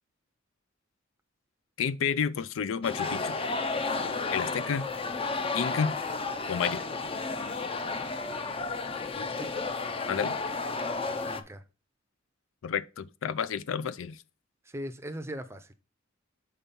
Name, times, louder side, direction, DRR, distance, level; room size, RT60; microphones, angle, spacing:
voice 1, 1.8-3.4 4.3-4.9 5.5-6.0 6.5-6.8 10.1-10.4 12.6-14.2, left 7 dB, 80° left, 0.4 m, -30 dB
sound 1, 2.8-11.4, left 3 dB, 30° left, 0.5 m, -32 dB
voice 2, 9.2-9.7 11.2-11.6 14.7-15.7, equal, 15° right, 0.6 m, -40 dB
5.7 x 4.5 x 5.2 m
head